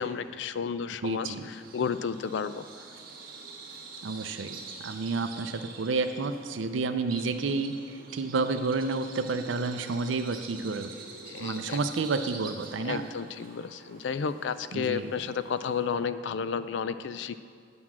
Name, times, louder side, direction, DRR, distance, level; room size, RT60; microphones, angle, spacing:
voice 1, 0.0-2.9 11.3-11.8 12.8-17.4, left 6 dB, 65° left, 13 dB, 0.4 m, -32 dB
voice 2, 1.0-1.5 4.0-10.9 11.4-13.0 14.7-15.1, right 3 dB, 80° right, 8 dB, 0.5 m, -30 dB
Bird vocalization bird call bird song, 1.2-16.0, right 4 dB, 50° right, 1.4 m, -46 dB
9.5 x 6.1 x 7.2 m, 2.4 s
head